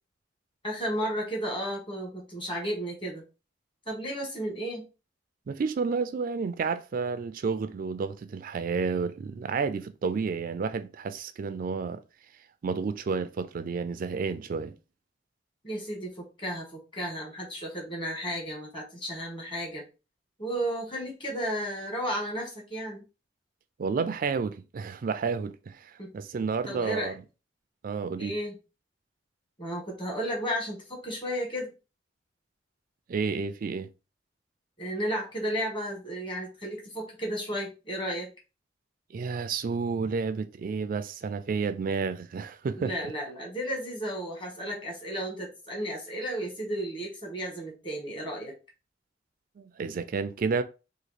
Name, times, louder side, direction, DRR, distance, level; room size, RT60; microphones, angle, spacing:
voice 1, 0.6-3.2 3.8-4.9 15.6-19.8 20.4-23.0 26.0-26.1 26.7-27.1 28.2-28.6 29.6-31.7 34.8-38.3 42.8-48.5, equal, 30° left, 1.5 m, -33 dB
voice 2, 5.5-12.0 12.6-14.7 23.8-27.1 27.8-28.4 33.1-33.9 39.1-42.9 49.6-50.6, right 5 dB, 50° right, 0.4 m, -31 dB
2.9 x 2.7 x 4.1 m
head